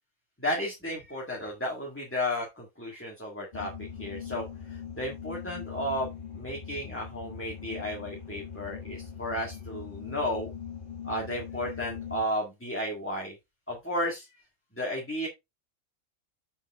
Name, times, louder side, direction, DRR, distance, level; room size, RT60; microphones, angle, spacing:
voice 1, 0.4-3.7 4.0-10.5 11.0-13.4 13.7-14.3 14.8-15.3, equal, 10° left, -2 dB, 1.8 m, -33 dB
sound 1, 3.5-12.2, left 7 dB, 40° left, 1.7 m, -41 dB
7.1 x 6.1 x 3.5 m, 0.22 s
omnidirectional pair, 1.3 m